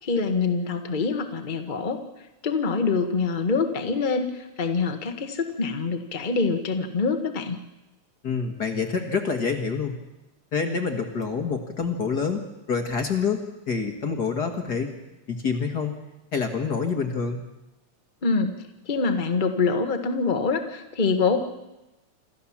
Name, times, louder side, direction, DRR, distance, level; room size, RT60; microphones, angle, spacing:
voice 1, 0.0-2.0 2.4-7.6 18.2-18.6 18.8-21.4, left 4 dB, 25° left, 6 dB, 1.0 m, -25 dB
voice 2, 8.2-10.0 10.5-14.9 15.3-16.0 16.3-17.4, left 5 dB, 40° left, 5 dB, 1.7 m, -27 dB
27.5 x 13.5 x 7.3 m, 1.0 s
omnidirectional pair, 3.4 m